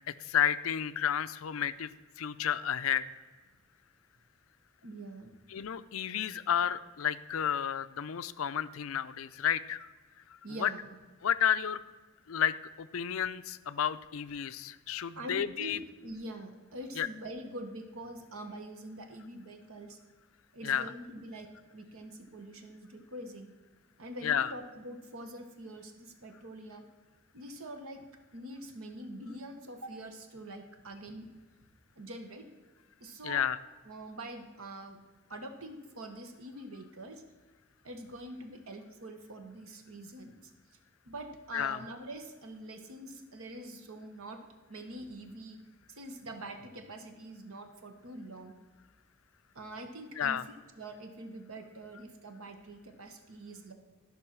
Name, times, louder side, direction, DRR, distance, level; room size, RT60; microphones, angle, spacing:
voice 1, 0.2-1.9 2.2-3.1 5.5-9.9 10.6-10.7 11.2-11.8 12.3-15.8 17.0-17.1 20.6-20.9 24.2-24.5 33.2-33.6 41.5-41.8 50.2-50.4, left 9 dB, 70° left, 14 dB, 0.5 m, -31 dB
voice 2, 4.8-5.3 10.4-10.9 15.1-20.0 20.5-23.5 24.0-26.8 27.3-28.0 28.3-31.3 32.0-32.5 33.0-33.4 33.8-35.0 35.3-37.2 37.8-40.3 41.1-44.4 44.7-45.6 45.9-48.6 49.5-50.4 50.8-53.7, right 1 dB, 75° right, 6 dB, 1.4 m, -44 dB
13.0 x 5.5 x 6.0 m, 1.3 s
head